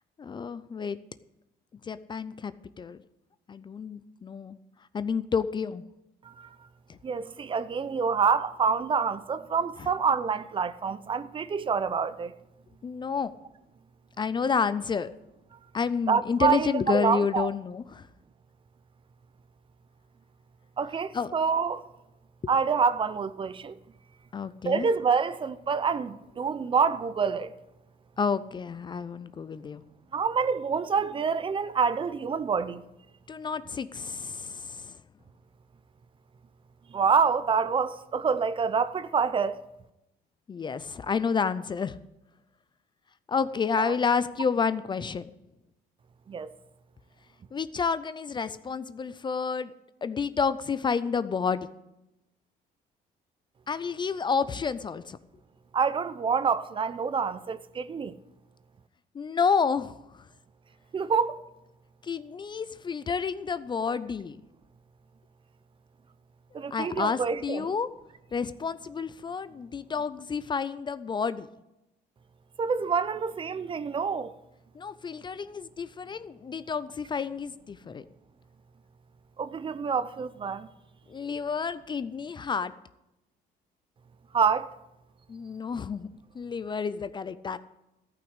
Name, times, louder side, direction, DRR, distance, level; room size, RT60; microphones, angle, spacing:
voice 1, 0.2-1.0 1.8-3.0 3.5-4.6 4.9-5.8 6.9-7.0 9.8-9.9 12.8-13.3 14.2-15.1 15.7-18.1 21.1-21.3 24.3-24.9 28.2-29.8 33.3-35.0 40.5-42.0 43.3-45.2 47.5-49.7 50.0-51.7 53.7-55.2 59.1-60.3 62.0-64.4 66.7-67.9 68.3-71.5 74.7-78.0 81.1-82.7 85.3-86.1 86.3-87.6, left 5 dB, 25° left, 0.4 m, -30 dB
voice 2, 7.0-12.4 16.1-17.5 20.8-21.8 22.5-23.8 24.6-27.5 30.1-32.8 36.9-39.6 43.8-44.0 46.3-46.5 55.7-58.1 60.9-61.4 66.5-67.7 72.6-74.3 79.4-80.7 84.3-84.7, right 6 dB, 30° right, 0.6 m, -27 dB
13.5 x 6.0 x 8.0 m
cardioid pair, 110°, 17 cm